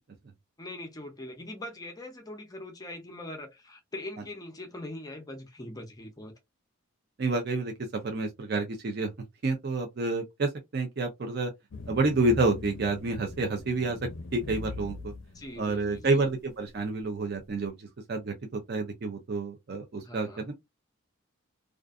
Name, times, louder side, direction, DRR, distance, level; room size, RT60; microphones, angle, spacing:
voice 1, 0.6-6.3 15.3-16.3 20.0-20.5, left 1 dB, 15° left, 0.5 m, -42 dB
voice 2, 7.2-9.1 9.4-11.5 11.9-14.0 14.3-15.1 15.6-17.7 18.1-18.3 18.7-20.5, right 3 dB, 50° right, 0.5 m, -29 dB
sound 1, 11.7-16.3, left 3 dB, 60° left, 0.5 m, -41 dB
2.4 x 2.4 x 2.3 m
head